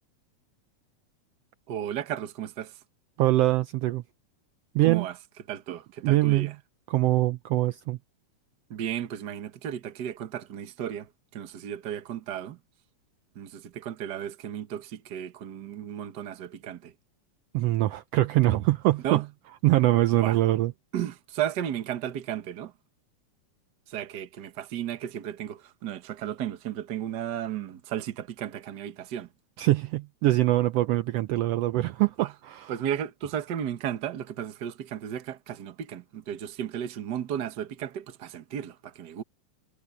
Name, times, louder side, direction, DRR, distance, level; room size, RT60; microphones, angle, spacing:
voice 1, 1.7-2.7 4.8-5.1 5.5-6.5 8.7-12.6 13.3-16.9 19.0-19.2 20.2-20.4 20.9-22.7 23.9-29.3 32.2-32.3 32.7-39.2, right 10 dB, 55° right, 1.2 m, -34 dB
voice 2, 3.2-4.0 4.7-5.1 6.0-6.5 6.9-8.0 17.5-19.2 19.6-20.7 29.6-32.7, right 16 dB, 85° right, 1.4 m, -23 dB
omnidirectional pair, 3.4 m